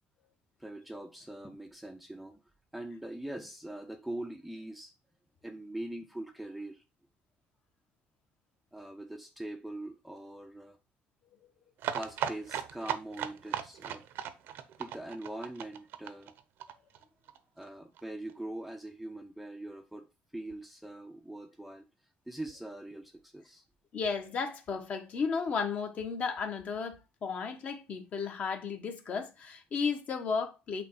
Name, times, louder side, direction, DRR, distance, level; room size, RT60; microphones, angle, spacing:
voice 1, 0.6-2.4 2.7-4.9 5.4-6.8 8.7-10.8 11.9-14.0 14.8-16.3 17.6-20.1 20.3-21.9 22.3-23.6, right 1 dB, ahead, 0.6 m, -42 dB
sound 1, 11.8-17.4 17.6-17.7 18.0-18.1 18.3-18.4, right 10 dB, 65° right, 0.8 m, -37 dB
voice 2, 23.9-30.8, left 5 dB, 40° left, 1.3 m, -34 dB
8.4 x 3.2 x 4.8 m
cardioid pair, 145°, 4 cm